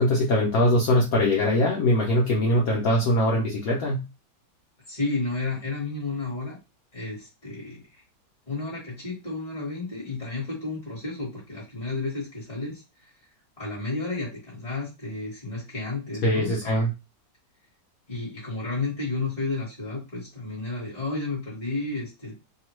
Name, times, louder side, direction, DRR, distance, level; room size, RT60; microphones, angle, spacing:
voice 1, 0.0-4.0 16.2-16.9, left 1 dB, 65° left, -2 dB, 1.0 m, -22 dB
voice 2, 4.9-6.6 6.9-8.0 8.5-12.8 13.6-16.8 18.1-22.3, left 3 dB, 25° left, -5 dB, 1.1 m, -32 dB
2.9 x 2.3 x 3.0 m, 0.26 s
omnidirectional pair, 1.9 m